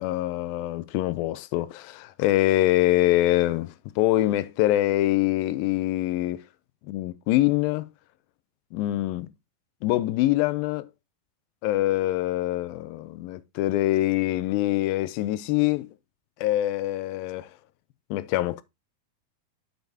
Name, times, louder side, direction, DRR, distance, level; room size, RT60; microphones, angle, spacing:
voice 1, 0.0-6.4 6.9-7.9 8.7-9.3 9.8-10.9 11.6-15.9 16.4-17.5 18.1-18.6, left 15 dB, 85° left, 2.3 m, -24 dB
7.9 x 6.9 x 2.7 m
omnidirectional pair, 4.2 m